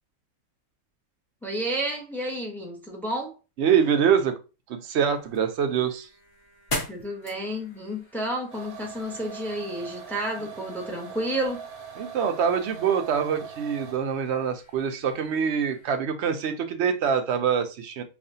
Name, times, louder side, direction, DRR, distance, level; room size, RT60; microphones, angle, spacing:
voice 1, 1.4-3.3 6.9-11.6, right 1 dB, ahead, 0.6 m, -31 dB
voice 2, 3.6-4.4 4.7-6.1 12.0-18.0, right 7 dB, 65° right, 0.7 m, -25 dB
sound 1, 5.0-16.0, left 1 dB, 45° left, 1.6 m, -42 dB
sound 2, 8.5-14.2, right 7 dB, 80° right, 1.1 m, -41 dB
5.0 x 2.4 x 2.6 m
omnidirectional pair, 1.5 m